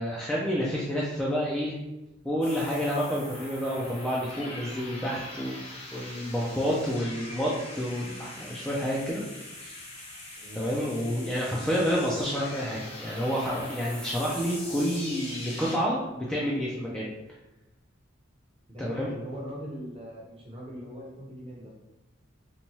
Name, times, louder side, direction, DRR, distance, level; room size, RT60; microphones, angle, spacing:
voice 1, 0.0-1.8 2.2-5.6 5.9-9.2 9.6-9.8 10.5-17.1 18.8-19.1, equal, 5° left, -6 dB, 0.3 m, -29 dB
sound 1, 2.4-15.8, left 1 dB, 30° left, 0.8 m, -42 dB
voice 2, 18.7-21.7, equal, 30° right, -3 dB, 0.7 m, -40 dB
2.9 x 2.2 x 2.7 m, 0.96 s
head